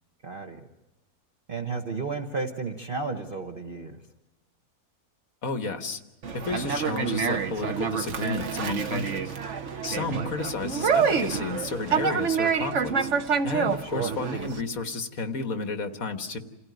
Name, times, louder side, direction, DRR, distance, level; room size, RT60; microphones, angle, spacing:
voice 1, 0.2-0.6 1.5-4.0 10.0-10.3 13.8-14.1, right 4 dB, 40° right, 3 dB, 1.4 m, -33 dB
voice 2, 5.4-6.0 6.4-9.3 9.8-13.1 13.4-16.4, left 3 dB, 65° left, 7 dB, 1.9 m, -32 dB
Conversation, 6.2-14.6, right 6 dB, 55° right, 1.3 m, -27 dB
28.0 x 16.0 x 9.4 m, 1.0 s
omnidirectional pair, 1.6 m